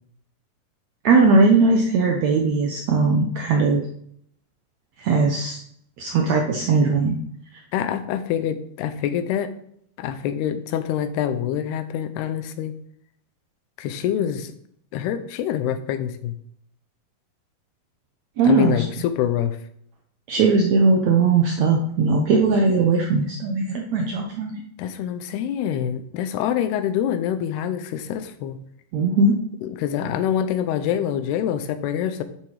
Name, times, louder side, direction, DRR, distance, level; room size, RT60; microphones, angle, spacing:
voice 1, 1.0-3.8 5.0-5.6 6.0-7.2 18.4-18.8 20.3-24.6 28.9-29.4, right 3 dB, 75° right, 2 dB, 1.6 m, -19 dB
voice 2, 7.7-9.5 10.0-12.8 13.8-14.6 14.9-16.3 18.4-19.6 24.8-28.6 29.6-32.2, left 9 dB, 90° left, 11 dB, 2.9 m, -25 dB
11.5 x 7.2 x 4.9 m, 0.67 s
omnidirectional pair, 4.5 m